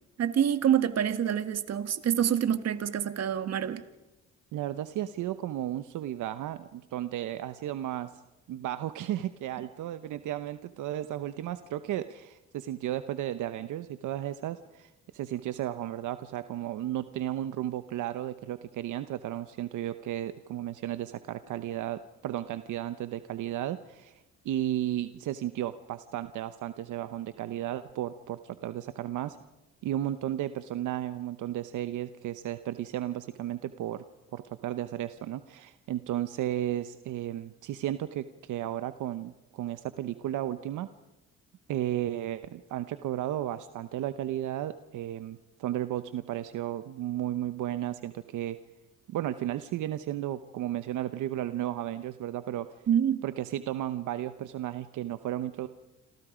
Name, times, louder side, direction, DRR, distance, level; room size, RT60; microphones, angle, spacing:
voice 1, 0.2-3.8 52.9-53.2, right 9 dB, 55° right, 11 dB, 1.7 m, -26 dB
voice 2, 4.5-8.1 8.5-29.4 29.8-34.0 34.3-40.9 41.7-48.6 49.1-52.7 53.2-55.7, right 12 dB, 80° right, 11 dB, 0.9 m, -34 dB
27.5 x 27.5 x 5.1 m, 1.0 s
cardioid pair, 90°, 30 cm